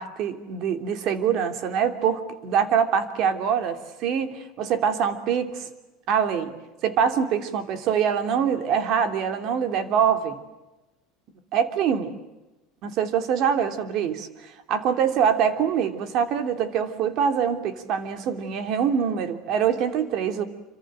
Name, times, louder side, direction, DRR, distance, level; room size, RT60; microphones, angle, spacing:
voice 1, 0.0-5.7 6.1-6.5 6.8-10.4 11.5-12.1 12.8-20.4, right 7 dB, 40° right, 7 dB, 3.0 m, -24 dB
28.5 x 26.0 x 7.7 m, 1.0 s
cardioid pair, 165°, 0 cm